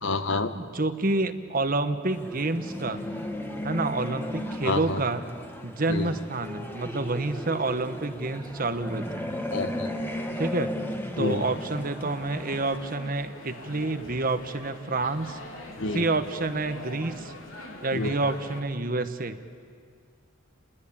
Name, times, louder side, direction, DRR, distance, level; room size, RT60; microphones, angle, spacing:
voice 1, 0.0-0.5 4.6-5.0 5.9-6.1 9.5-9.9 11.2-11.4 15.8-16.0 17.9-18.1, left 3 dB, 65° left, 10 dB, 1.3 m, -28 dB
voice 2, 0.5-3.0 3.6-5.3 5.6-9.2 10.4-10.7 11.2-15.4 15.9-17.3 17.8-19.4, right 2 dB, 45° right, 10 dB, 1.2 m, -28 dB
sound 1, 2.1-12.8, left 1 dB, 10° left, 1.8 m, -35 dB
sound 2, 11.2-18.6, left 2 dB, 85° left, 3.4 m, -43 dB
30.0 x 21.0 x 8.7 m, 2.1 s
head